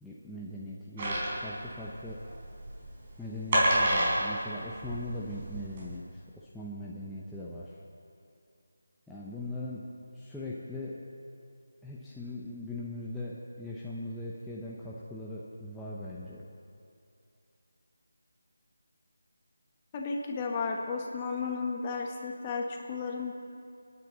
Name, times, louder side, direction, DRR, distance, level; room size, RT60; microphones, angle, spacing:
voice 1, 0.0-2.2 3.2-7.8 9.1-9.8 10.1-11.0 11.8-16.4, left 1 dB, 5° left, -8 dB, 0.8 m, -40 dB
sound 1, 1.0-5.9, right 1 dB, 30° right, 3.9 m, -29 dB
voice 2, 19.9-23.3, left 4 dB, 25° left, 1 dB, 1.3 m, -33 dB
27.5 x 9.7 x 4.0 m, 2.6 s
figure-of-eight pair, 165°, 0 cm